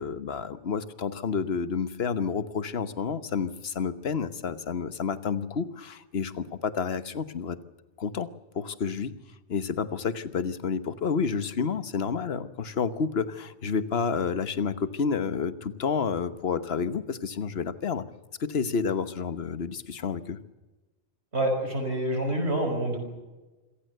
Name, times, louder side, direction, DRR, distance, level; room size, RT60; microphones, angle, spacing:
voice 1, 0.0-7.6 8.0-8.3 8.5-9.1 9.5-18.0 18.4-20.4, left 6 dB, 60° left, 13 dB, 1.4 m, -30 dB
voice 2, 21.3-23.0, right 1 dB, 65° right, 4 dB, 5.9 m, -27 dB
26.5 x 16.0 x 8.0 m, 1.1 s
omnidirectional pair, 1.2 m